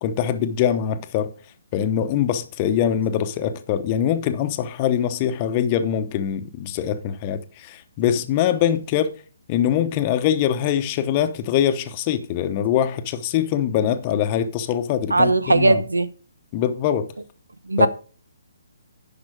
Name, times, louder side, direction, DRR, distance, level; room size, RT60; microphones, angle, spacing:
voice 1, 0.0-1.3 1.7-9.2 9.5-15.8 16.5-17.1 17.8-17.9, left 9 dB, 30° left, 0.9 m, -23 dB
voice 2, 15.1-16.1 17.7-17.9, right 2 dB, 85° right, 0.7 m, -18 dB
10.5 x 5.4 x 5.0 m
figure-of-eight pair, 140°, 0 cm